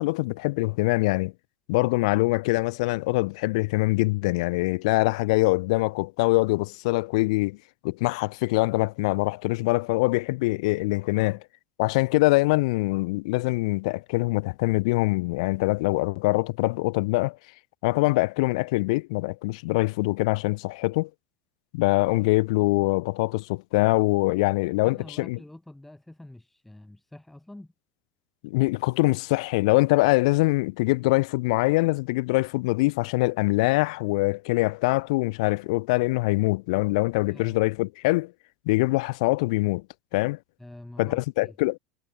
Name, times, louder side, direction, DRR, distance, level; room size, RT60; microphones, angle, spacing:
voice 1, 0.0-1.3 1.7-7.6 7.8-11.4 11.8-17.4 17.8-21.1 21.7-25.4 28.4-38.3 38.7-39.8 40.1-40.4 41.0-41.8, left 23 dB, 75° left, 0.4 m, -24 dB
voice 2, 24.8-27.7 37.3-37.6 40.6-41.5, left 1 dB, 5° left, 5.4 m, -46 dB
supercardioid pair, 125°, 3 cm